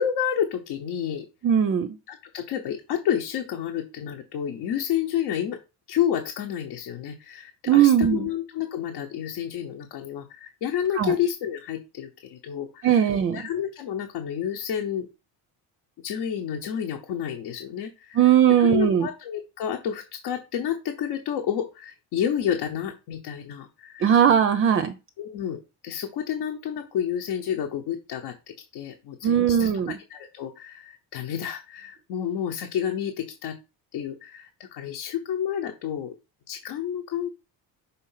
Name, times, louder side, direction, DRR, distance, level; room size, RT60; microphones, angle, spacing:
voice 1, 0.0-1.3 2.1-5.6 5.9-15.1 16.0-24.2 25.2-33.6 33.9-36.1 36.5-37.3, left 9 dB, 80° left, 1.0 m, -30 dB
voice 2, 1.4-1.9 7.7-8.3 11.0-11.1 12.8-13.4 18.2-19.1 24.0-24.9 29.2-29.9, right 9 dB, 35° right, 0.4 m, -19 dB
5.6 x 3.7 x 5.7 m
cardioid pair, 175°, 38 cm